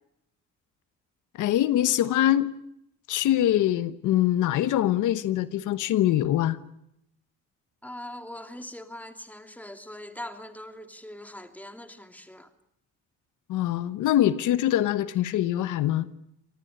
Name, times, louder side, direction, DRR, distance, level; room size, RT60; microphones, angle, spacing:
voice 1, 1.3-2.5 3.1-6.6 13.5-16.1, left 12 dB, 85° left, 1.1 m, -23 dB
voice 2, 7.8-12.5, left 1 dB, 5° left, 2.7 m, -41 dB
26.0 x 18.5 x 9.9 m
cardioid pair, 90°, 30 cm